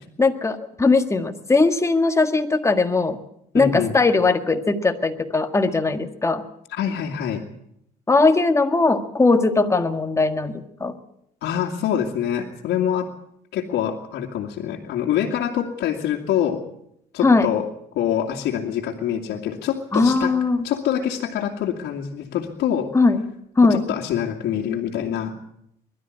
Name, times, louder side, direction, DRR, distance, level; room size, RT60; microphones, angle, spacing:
voice 1, 0.2-3.2 3.5-6.4 8.1-10.9 17.2-17.5 19.9-20.7 22.9-23.3 23.6-23.8, left 3 dB, 15° left, 7 dB, 1.8 m, -19 dB
voice 2, 3.5-3.9 6.7-7.4 11.4-13.1 13.5-16.6 17.1-17.7 17.9-20.3 20.6-22.9 23.7-25.4, left 9 dB, 80° left, -3 dB, 2.4 m, -25 dB
21.5 x 12.5 x 9.7 m, 0.76 s
cardioid pair, 110°, 17 cm